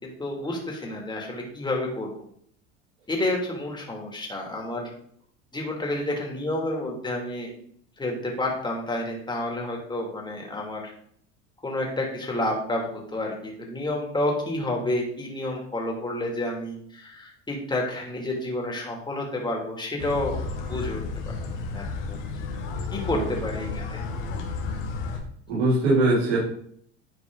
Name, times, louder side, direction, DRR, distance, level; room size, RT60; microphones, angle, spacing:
voice 1, 0.0-2.1 3.1-4.9 5.5-7.5 8.0-10.9 11.6-20.4 20.7-21.0 21.3-21.4 21.7-22.2 22.9-24.1, left 1 dB, 15° left, 0 dB, 2.8 m, -30 dB
sound 1, 20.0-25.2, left 4 dB, 80° left, 1.9 m, -32 dB
voice 2, 25.5-26.4, right 2 dB, 80° right, -7 dB, 4.0 m, -21 dB
10.5 x 4.7 x 3.9 m, 0.63 s
supercardioid pair, 105°, 34 cm